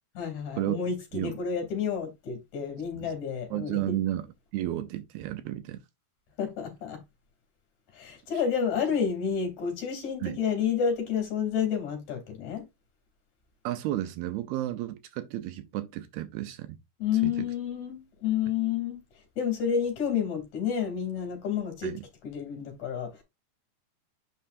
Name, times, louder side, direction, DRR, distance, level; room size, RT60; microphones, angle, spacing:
voice 1, 0.1-4.0 6.4-7.0 7.9-12.7 17.0-19.0 19.4-21.9 22.2-23.2, left 7 dB, 50° left, 3.7 m, -30 dB
voice 2, 3.5-4.3 4.5-5.8 10.2-10.4 13.6-16.8 17.1-17.5 21.8-22.0, right 14 dB, 80° right, 2.4 m, -32 dB
9.0 x 5.5 x 2.5 m
omnidirectional pair, 4.6 m